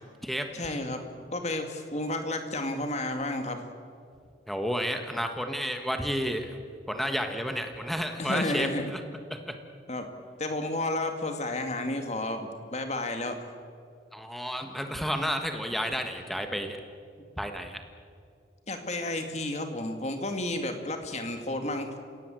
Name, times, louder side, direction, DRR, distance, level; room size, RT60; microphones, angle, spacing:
voice 1, 0.5-1.0 1.3-3.6 8.2-8.9 9.9-10.1 10.4-13.4 17.2-17.3 18.7-22.0, left 2 dB, 35° left, 6 dB, 2.3 m, -31 dB
voice 2, 4.5-6.6 6.9-9.0 9.3-9.5 14.1-16.8 17.4-17.8, equal, ahead, 5 dB, 1.5 m, -31 dB
30.0 x 17.0 x 7.8 m, 2.3 s
head